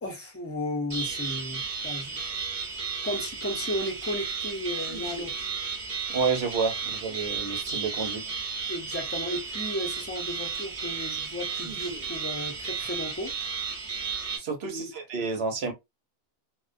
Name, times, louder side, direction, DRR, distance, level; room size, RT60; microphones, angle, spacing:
voice 1, 0.0-2.4 3.0-5.5 8.7-13.3 14.6-14.9, left 1 dB, 15° left, 0.6 m, -34 dB
sound 1, 0.9-14.4, right 5 dB, 50° right, 0.9 m, -33 dB
voice 2, 6.1-8.2 14.4-15.7, right 5 dB, 80° right, 1.0 m, -29 dB
2.4 x 2.1 x 2.5 m
omnidirectional pair, 1.1 m